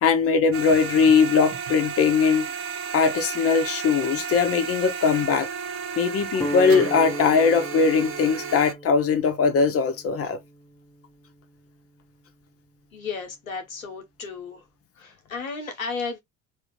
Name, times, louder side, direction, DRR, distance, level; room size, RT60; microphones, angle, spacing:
voice 1, 0.0-2.5 2.9-5.5 6.0-10.4, left 5 dB, 35° left, 0.9 m, -20 dB
sound 1, 0.5-8.7, right 6 dB, 35° right, 0.5 m, -33 dB
Guitar, 6.3-12.4, equal, 5° left, 0.9 m, -37 dB
voice 2, 12.9-14.7 15.0-16.2, left 4 dB, 90° left, 0.9 m, -34 dB
2.8 x 2.5 x 3.1 m
figure-of-eight pair, 65°, 40 cm